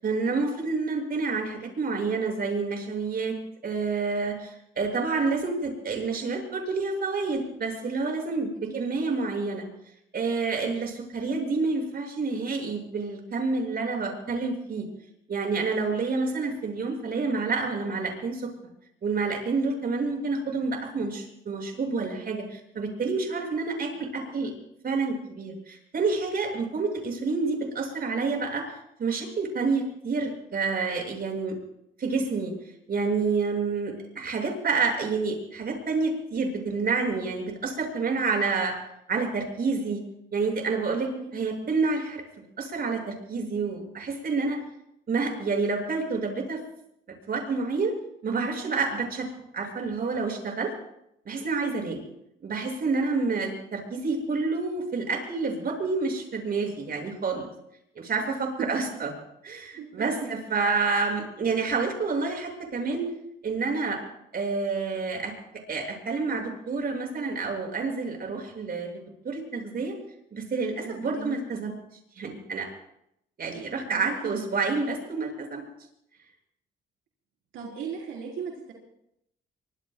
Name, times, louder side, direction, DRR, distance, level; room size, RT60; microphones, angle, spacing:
voice 1, 0.0-3.3 3.6-9.6 10.1-14.9 15.3-18.5 19.0-24.5 24.8-28.6 29.0-31.5 32.0-32.5 32.9-38.7 39.1-40.0 40.3-42.2 42.6-44.6 45.1-46.6 47.3-47.9 48.2-49.3 49.5-50.7 51.2-52.0 52.4-57.5 57.9-59.1 59.4-63.1 63.4-64.0 64.3-65.3 65.7-68.9 69.2-69.9 70.3-71.7 72.2-72.7 73.4-75.6, right 4 dB, 50° right, 2 dB, 6.9 m, -28 dB
voice 2, 41.0-41.3 58.2-59.0 59.8-60.4 70.8-71.4 73.9-74.3 77.5-78.7, right 6 dB, 80° right, -2 dB, 4.3 m, -38 dB
24.5 x 24.5 x 2.4 m, 0.78 s
cardioid pair, 90°, 20 cm